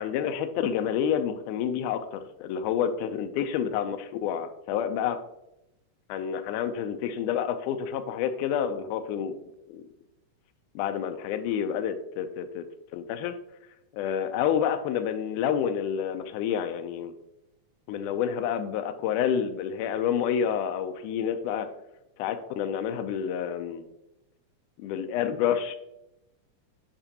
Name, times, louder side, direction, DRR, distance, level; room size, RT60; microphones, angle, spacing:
voice 1, 0.0-5.2 6.1-9.4 9.7-9.8 10.8-12.6 12.9-13.4 13.9-17.1 17.9-21.7 22.2-23.9 24.8-25.8, left 8 dB, 90° left, 8 dB, 2.1 m, -29 dB
9.0 x 5.2 x 2.8 m, 0.87 s
omnidirectional pair, 3.5 m